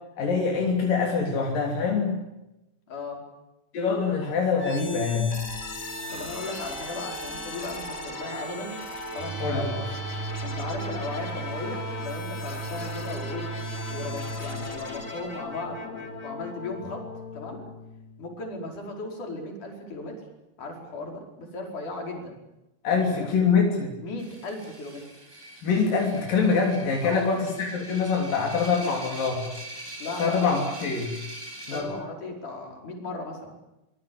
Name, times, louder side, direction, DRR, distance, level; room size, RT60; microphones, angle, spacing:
voice 1, 0.2-2.2 3.7-5.4 9.4-9.7 22.8-24.0 25.6-29.5 30.2-31.1 31.7-31.9, left 5 dB, 85° left, 0 dB, 5.0 m, -24 dB
voice 2, 2.9-3.2 6.1-8.8 9.1-9.9 10.4-13.5 13.9-17.0 17.3-17.6 18.2-20.1 20.6-22.4 22.9-23.3 24.0-25.0 27.0-27.4 30.0-30.7 31.7-33.5, left 2 dB, 65° left, 1 dB, 6.4 m, -36 dB
sound 1, 4.6-18.5, left 2 dB, 25° left, 3.1 m, -37 dB
sound 2, 9.2-14.8, right 4 dB, 75° right, 2.8 m, -36 dB
sound 3, 24.2-31.8, right 1 dB, 5° right, 6.1 m, -42 dB
24.5 x 23.0 x 8.8 m, 0.95 s
omnidirectional pair, 3.8 m